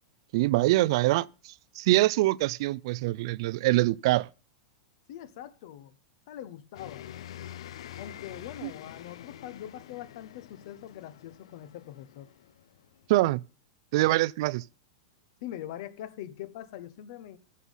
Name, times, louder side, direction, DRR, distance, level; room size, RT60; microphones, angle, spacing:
voice 1, 0.3-4.3 8.6-8.7 13.1-13.4 13.9-14.6, right 18 dB, 60° right, 0.4 m, -24 dB
voice 2, 5.1-6.0 6.3-7.1 8.0-12.3 15.4-17.4, left 11 dB, 60° left, 1.2 m, -42 dB
sound 1, 6.7-13.2, left 11 dB, 80° left, 0.6 m, -46 dB
14.5 x 5.6 x 5.5 m
hypercardioid pair, 130°, 3 cm